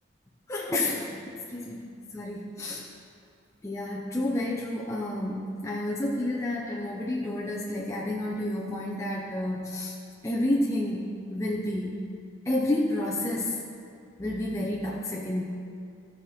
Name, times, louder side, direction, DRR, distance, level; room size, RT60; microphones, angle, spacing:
voice 1, 0.5-1.8 2.1-2.9 3.6-10.0 10.2-12.0 12.5-13.6 14.2-15.4, left 1 dB, 15° left, -4 dB, 0.7 m, -30 dB
15.0 x 5.7 x 4.3 m, 2.3 s
head